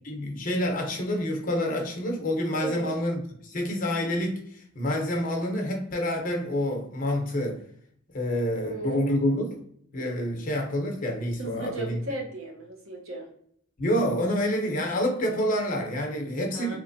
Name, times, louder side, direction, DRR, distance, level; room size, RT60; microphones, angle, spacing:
voice 1, 0.0-7.6 8.1-9.5 9.9-12.0 13.8-16.8, left 1 dB, 40° left, 2 dB, 0.8 m, -28 dB
voice 2, 2.6-2.9 8.6-9.1 11.4-13.3 16.5-16.8, right 2 dB, 90° right, 1 dB, 1.0 m, -35 dB
3.1 x 3.1 x 2.6 m, 0.66 s
head